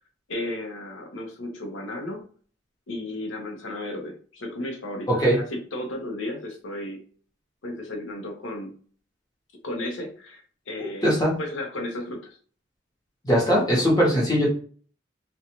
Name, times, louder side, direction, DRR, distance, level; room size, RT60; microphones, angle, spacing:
voice 1, 0.3-2.3 2.9-5.1 5.3-7.0 7.6-8.7 9.6-12.4, left 1 dB, 80° left, 3 dB, 0.7 m, -34 dB
voice 2, 5.1-5.4 10.8-11.4 13.2-14.5, equal, 20° left, -3 dB, 1.0 m, -21 dB
2.5 x 2.3 x 2.8 m, 0.43 s
head